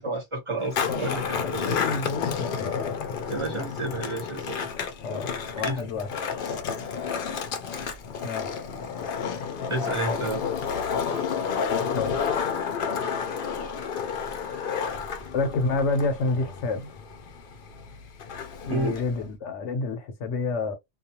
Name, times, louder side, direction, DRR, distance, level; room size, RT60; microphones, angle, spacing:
voice 1, 0.0-1.7 3.3-4.7 5.6-6.0 9.7-10.4 18.7-19.0, right 2 dB, 30° right, 0.7 m, -31 dB
Skateboard, 0.6-19.2, left 6 dB, 60° left, 0.7 m, -31 dB
voice 2, 0.9-2.9 5.0-6.1 8.2-8.6 11.9-12.2 15.3-16.9 18.6-20.7, left 3 dB, 90° left, 1.0 m, -29 dB
2.4 x 2.2 x 2.8 m
omnidirectional pair, 1.2 m